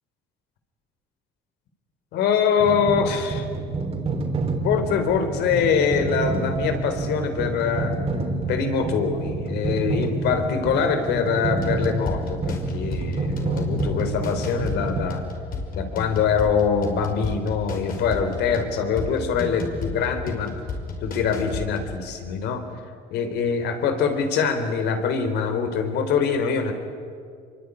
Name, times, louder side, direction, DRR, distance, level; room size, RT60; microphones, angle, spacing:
voice 1, 2.1-3.5 4.6-7.9 8.5-15.2 15.7-20.5 21.0-22.6 23.1-26.7, left 6 dB, 80° left, 8 dB, 3.8 m, -24 dB
sound 1, 2.6-15.0, right 3 dB, 35° right, 4.1 m, -28 dB
sound 2, 11.6-21.9, left 4 dB, 55° left, 5.5 m, -33 dB
26.0 x 23.5 x 9.8 m, 2.3 s
cardioid pair, 110°, 17 cm